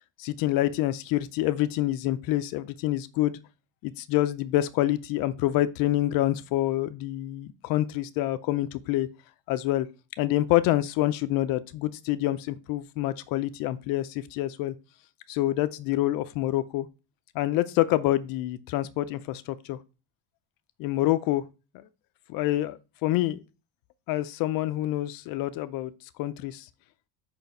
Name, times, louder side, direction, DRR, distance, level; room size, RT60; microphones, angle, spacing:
voice 1, 0.2-3.4 3.8-9.1 9.5-9.9 10.2-14.7 15.3-16.9 17.3-19.8 20.8-21.4 21.7-21.8 22.3-23.4 24.1-25.9 26.2-26.7, left 15 dB, 55° left, 0.5 m, -27 dB
5.6 x 4.5 x 5.2 m
cardioid pair, 165°, 41 cm